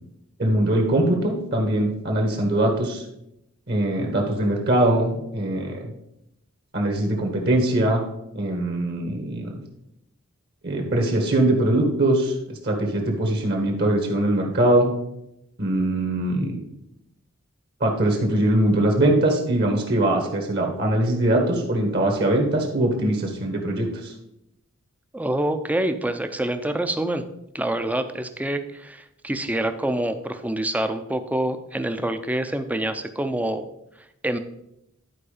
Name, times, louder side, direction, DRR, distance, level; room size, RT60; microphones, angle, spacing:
voice 1, 0.4-3.0 3.7-5.9 6.7-8.0 8.3-9.6 10.6-14.9 15.6-16.6 17.8-24.1, right 1 dB, 50° right, 1 dB, 1.5 m, -22 dB
voice 2, 25.1-27.2 27.5-33.6 34.2-34.4, right 1 dB, 5° right, 9 dB, 0.5 m, -26 dB
11.0 x 4.8 x 5.0 m, 0.82 s
head